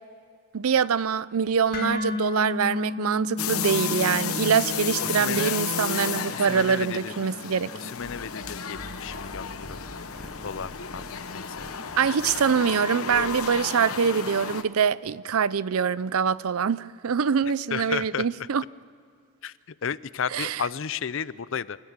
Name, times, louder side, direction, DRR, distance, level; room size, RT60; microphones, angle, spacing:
voice 1, 0.5-7.7 12.0-18.6 20.3-20.6, right 6 dB, 85° right, 0.5 m, -24 dB
sound 1, 1.7-9.8, left 3 dB, 40° left, 2.1 m, -35 dB
sound 2, 3.4-14.6, left 6 dB, 85° left, 1.0 m, -32 dB
voice 2, 5.0-5.6 6.3-7.1 7.7-9.8 10.4-11.0 11.3-11.7 17.7-18.5 19.4-19.5 19.8-21.8, left 7 dB, 65° left, 0.5 m, -33 dB
sound 3, 8.0-13.7, equal, 5° right, 0.6 m, -46 dB
30.0 x 14.5 x 7.4 m
head